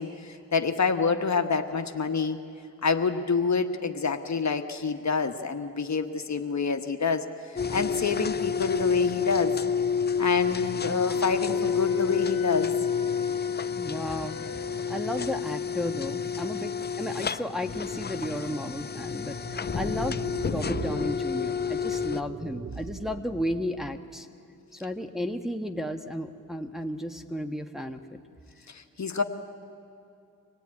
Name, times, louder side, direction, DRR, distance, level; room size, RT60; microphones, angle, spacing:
voice 1, 0.0-2.4 2.8-9.5 10.2-12.7 28.7-29.2, left 5 dB, 50° left, 6 dB, 1.4 m, -27 dB
sound 1, 7.6-22.2, left 6 dB, 30° left, 0.5 m, -29 dB
Wind instrument woodwind instrument, 10.5-15.2, left 7 dB, 75° left, 1.1 m, -44 dB
voice 2, 13.8-14.4 14.9-20.2 20.5-24.3 24.7-28.2, left 1 dB, ahead, 4 dB, 1.5 m, -33 dB
sound 2, 19.3-24.1, right 5 dB, 35° right, 0.7 m, -40 dB
25.5 x 17.5 x 9.8 m, 2.6 s
cardioid pair, 55°, 34 cm